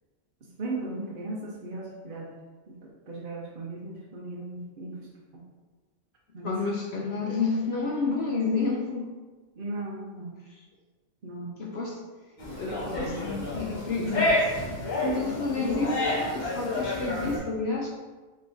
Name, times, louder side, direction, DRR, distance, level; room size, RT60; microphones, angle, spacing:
voice 1, 0.4-2.3 2.7-5.4 6.3-6.7 6.9-7.4 9.5-10.3 11.2-11.5 12.6-13.2 15.0-15.7, right 2 dB, 50° right, -4 dB, 0.8 m, -37 dB
voice 2, 6.4-9.1 11.6-12.0 12.5-14.5 14.9-17.9, left 4 dB, 65° left, -2 dB, 0.7 m, -30 dB
sound 1, 12.4-17.4, left 2 dB, 40° left, 1.0 m, -29 dB
3.6 x 3.1 x 3.9 m, 1.3 s
omnidirectional pair, 1.4 m